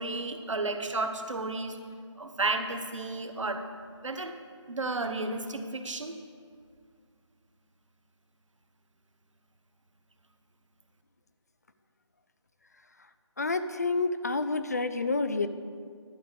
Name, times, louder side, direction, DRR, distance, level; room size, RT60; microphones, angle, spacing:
voice 1, 0.0-1.8 2.2-3.6 4.0-4.3 4.7-6.2, right 2 dB, 85° right, 6 dB, 1.1 m, -32 dB
voice 2, 13.4-15.5, left 3 dB, 35° left, 11 dB, 0.4 m, -28 dB
11.5 x 5.1 x 7.9 m, 2.1 s
figure-of-eight pair, 165°, 16 cm